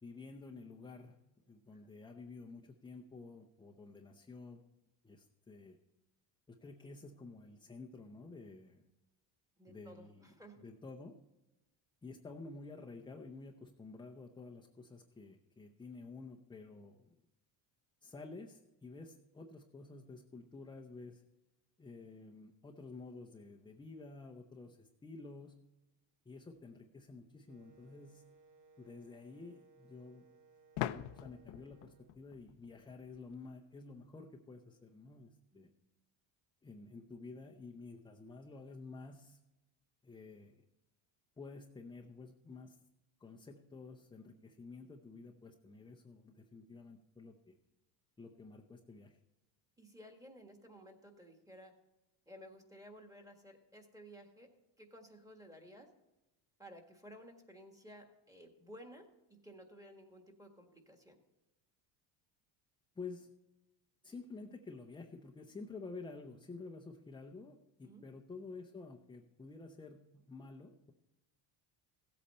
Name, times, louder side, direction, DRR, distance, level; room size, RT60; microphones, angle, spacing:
voice 1, 0.0-1.2 1.5-4.6 5.0-5.8 6.5-8.8 9.7-10.3 10.6-11.2 12.0-17.2 18.0-21.2 21.8-25.6 26.3-28.2 28.8-30.2 30.9-35.7 36.6-39.4 40.0-40.6 41.4-42.8 43.2-47.6 48.2-49.2 63.0-63.3 64.0-70.9, left 3 dB, 10° left, 2 dB, 0.6 m, -51 dB
voice 2, 9.6-10.6 35.5-35.7 49.8-51.7 52.3-54.5 54.8-55.9 56.6-59.1 59.4-61.2 67.8-68.0, equal, 5° right, 4 dB, 1.6 m, -55 dB
Wind instrument woodwind instrument, 27.5-32.1, right 3 dB, 75° right, 1.3 m, -65 dB
sound 1, 27.8-27.9 30.8-33.4, left 13 dB, 70° left, 0.7 m, -43 dB
16.0 x 8.4 x 4.3 m, 1.0 s
cardioid pair, 125°, 50 cm